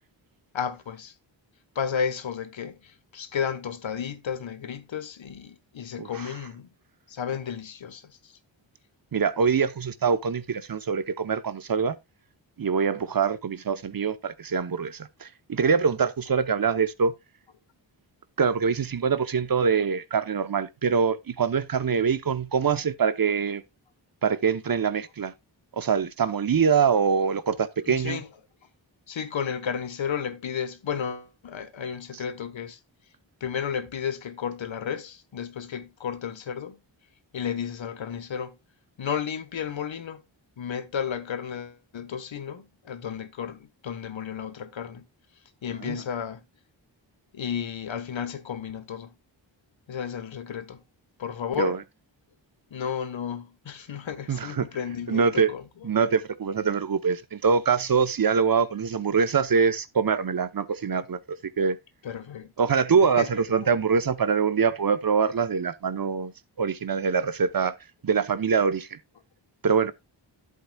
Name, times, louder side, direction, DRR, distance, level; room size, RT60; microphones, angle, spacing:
voice 1, 0.5-1.1 1.7-6.7 7.1-8.3 27.8-28.2 29.1-32.8 33.4-36.8 37.3-38.6 39.0-40.2 40.6-45.0 45.6-46.4 47.3-49.1 49.9-50.8 51.2-51.8 52.7-55.6 56.1-56.2 62.0-62.5 63.2-63.7, left 7 dB, 80° left, 1.4 m, -33 dB
voice 2, 6.0-6.3 9.1-12.0 12.6-17.1 18.4-23.6 24.2-25.3 25.7-28.2 45.8-46.0 51.6-51.8 54.3-54.7 55.1-55.5 55.8-61.8 62.6-67.7 68.0-69.0 69.6-69.9, right 6 dB, 50° right, 0.9 m, -24 dB
11.0 x 8.2 x 2.3 m
wide cardioid pair, 85°, 45 cm